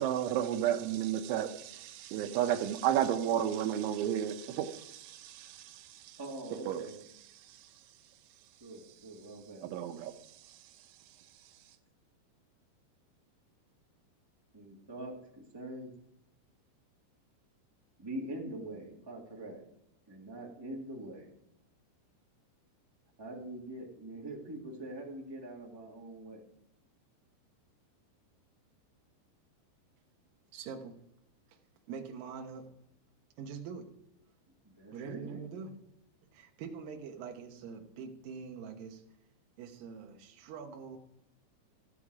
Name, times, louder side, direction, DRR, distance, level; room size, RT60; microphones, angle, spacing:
voice 1, 0.0-5.8 6.7-6.8 9.6-10.1, right 10 dB, 90° right, 8 dB, 3.3 m, -32 dB
voice 2, 6.2-7.0 8.6-9.6 14.5-15.2 15.5-15.9 18.0-19.6 20.1-21.3 23.2-26.4 34.6-35.3, right 1 dB, 15° right, -3 dB, 0.8 m, -43 dB
voice 3, 30.5-31.0 31.5-31.6 31.9-32.7 33.4-33.9 34.9-35.7 36.3-39.0 39.6-41.0, right 6 dB, 65° right, 3 dB, 2.5 m, -44 dB
15.5 x 8.2 x 4.9 m, 0.82 s
omnidirectional pair, 5.3 m